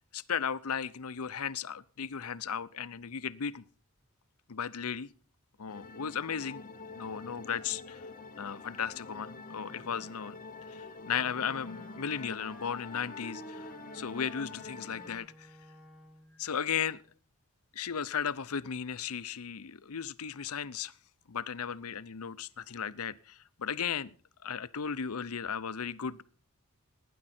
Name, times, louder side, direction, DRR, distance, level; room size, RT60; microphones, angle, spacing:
voice 1, 0.1-3.6 4.5-5.1 5.6-6.6 6.9-8.0 8.4-10.4 10.7-13.7 13.9-15.5 16.4-17.0 17.7-20.9 21.3-24.1 24.4-26.2, left 7 dB, 80° left, 0.7 m, -35 dB
sound 1, 5.7-15.2, left 3 dB, 35° left, 0.9 m, -46 dB
Wind instrument woodwind instrument, 11.1-16.4, right 1 dB, ahead, 1.5 m, -52 dB
18.5 x 10.0 x 4.4 m
head